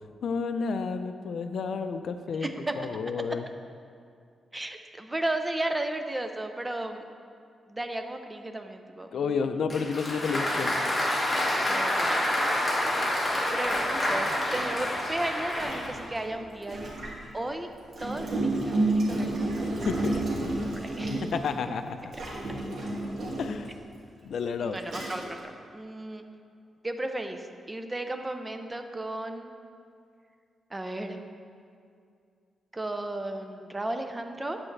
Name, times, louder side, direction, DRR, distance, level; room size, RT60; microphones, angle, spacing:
voice 1, 0.2-2.5 2.8-3.5 9.1-10.7 19.9-20.0 21.3-22.0 23.4-23.7 24.2-24.8, left 5 dB, 65° left, 9 dB, 0.4 m, -30 dB
voice 2, 2.4-2.7 4.5-7.1 7.7-9.4 11.7-12.5 13.5-16.9 17.3-17.7 18.0-21.2 24.6-25.4 25.7-26.2 26.8-29.5 30.7-31.2 32.7-34.6, right 1 dB, 15° right, 6 dB, 0.5 m, -34 dB
Applause, 9.7-16.0, left 1 dB, 20° left, 1.7 m, -28 dB
Gurgling, 13.7-13.8 14.5-17.3 17.9-21.5 22.1-23.6 24.3-24.4 24.8-25.4, right 2 dB, 55° right, 2.1 m, -31 dB
9.5 x 8.6 x 3.3 m, 2.4 s
wide cardioid pair, 125°, 0 cm